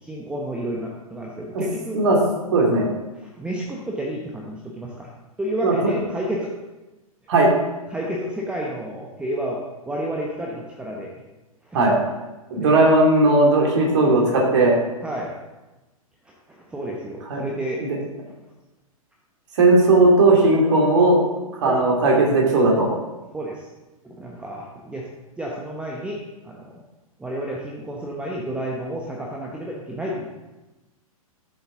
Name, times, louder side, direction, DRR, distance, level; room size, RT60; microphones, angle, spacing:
voice 1, 0.0-2.0 3.2-5.1 5.4-6.5 7.9-9.6 9.9-11.1 11.7-11.8 12.5-12.8 15.0-15.3 16.3-17.8 21.6-21.8 23.3-23.6 24.0-25.1 25.4-26.2 26.4-26.8 27.2-30.3, right 1 dB, 5° right, -2 dB, 1.0 m, -30 dB
voice 2, 2.5-2.9 5.6-5.7 7.3-7.5 11.7-11.9 12.5-14.8 17.3-17.4 17.8-18.0 19.6-21.2 21.6-22.9, right 2 dB, 50° right, -1 dB, 2.7 m, -17 dB
12.5 x 7.2 x 3.8 m, 1.1 s
figure-of-eight pair, 110°, 19 cm